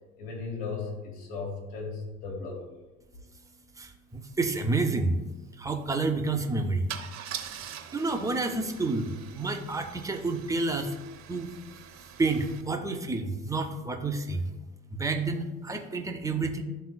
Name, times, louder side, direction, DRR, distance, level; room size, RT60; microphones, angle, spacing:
voice 1, 0.2-2.6, left 4 dB, 65° left, 0 dB, 1.7 m, -36 dB
voice 2, 3.8-5.2 5.6-6.9 7.9-11.0 11.3-11.5 12.2-14.5 14.9-16.6, right 3 dB, 10° right, 5 dB, 0.5 m, -29 dB
Car / Engine starting / Idling, 4.3-4.4 4.6-4.9 6.9-12.6, right 9 dB, 40° right, 0.8 m, -43 dB
11.0 x 3.8 x 2.2 m, 1.2 s
hypercardioid pair, 65°, 44 cm